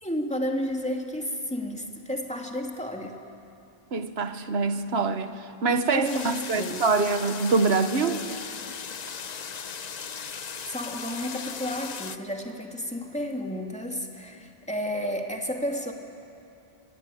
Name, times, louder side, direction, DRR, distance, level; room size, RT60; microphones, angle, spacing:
voice 1, 0.0-3.2 5.7-6.8 10.7-15.9, equal, 5° left, 2.5 m, -31 dB
voice 2, 3.9-8.3, right 4 dB, 80° right, 1.4 m, -25 dB
sound 1, 6.0-12.2, left 6 dB, 45° left, 0.8 m, -37 dB
26.0 x 22.0 x 10.0 m
omnidirectional pair, 1.0 m